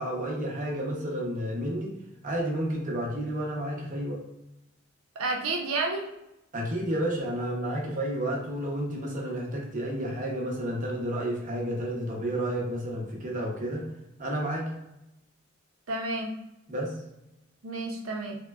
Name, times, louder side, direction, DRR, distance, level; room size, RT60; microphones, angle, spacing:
voice 1, 0.0-1.9 2.2-4.2 6.5-13.9 14.2-14.7 16.7-17.0, right 1 dB, 40° right, -1 dB, 0.8 m, -31 dB
voice 2, 5.2-6.1 15.9-16.3 17.6-18.4, right 2 dB, 85° right, 1 dB, 0.6 m, -30 dB
3.6 x 2.1 x 2.3 m, 0.90 s
head